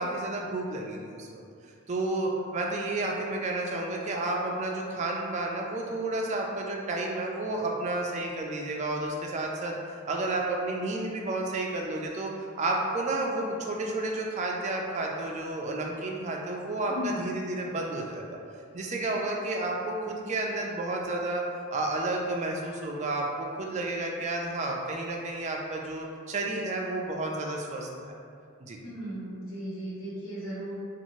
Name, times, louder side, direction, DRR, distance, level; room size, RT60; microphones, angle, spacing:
voice 1, 0.0-1.4 1.9-9.7 10.1-18.4 18.7-21.4 21.7-28.1 28.6-28.8, right 2 dB, 35° right, 0 dB, 0.3 m, -31 dB
voice 2, 16.9-17.3 28.8-30.7, equal, 85° left, -10 dB, 1.2 m, -36 dB
2.7 x 2.4 x 3.0 m, 2.3 s
head